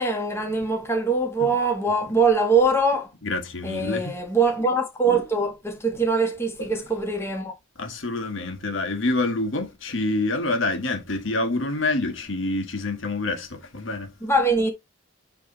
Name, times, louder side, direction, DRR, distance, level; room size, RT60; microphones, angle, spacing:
voice 1, 0.0-3.1 3.6-7.6 14.2-14.7, right 3 dB, 10° left, 1.6 m, -23 dB
voice 2, 3.2-4.1 6.6-6.7 7.8-14.1, left 2 dB, 70° left, 1.6 m, -27 dB
8.3 x 3.4 x 4.1 m
head